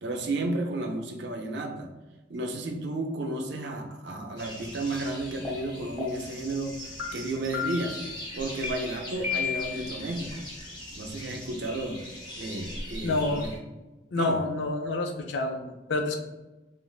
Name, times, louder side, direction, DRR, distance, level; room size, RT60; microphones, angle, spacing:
voice 1, 0.0-1.9 2.3-6.8 7.1-8.0 8.3-10.4 11.0-12.0 12.4-13.5 14.2-14.4 14.8-14.9, right 2 dB, 70° right, 3 dB, 0.5 m, -32 dB
sound 1, 4.4-13.6, left 1 dB, 25° left, 0.7 m, -41 dB
sound 2, 5.4-5.5 6.0-6.4 7.0-7.1 7.5-8.0 8.6-8.7 9.2-9.8, left 7 dB, 10° right, 0.8 m, -32 dB
voice 2, 13.0-13.5 14.1-16.2, left 2 dB, 75° left, 4 dB, 0.4 m, -28 dB
3.2 x 2.5 x 2.3 m, 1.1 s
head